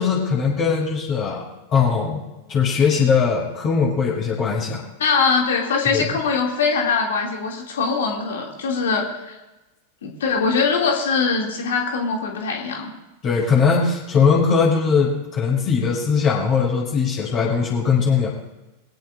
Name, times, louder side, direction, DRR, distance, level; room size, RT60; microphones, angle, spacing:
voice 1, 0.0-2.2 2.5-4.8 5.9-6.0 13.2-18.3, left 5 dB, 30° left, -4 dB, 6.2 m, -20 dB
voice 2, 5.0-9.4 10.0-12.9, left 5 dB, 60° left, 0 dB, 2.8 m, -22 dB
23.0 x 17.0 x 2.7 m, 1.0 s
figure-of-eight pair, 90°, 0 cm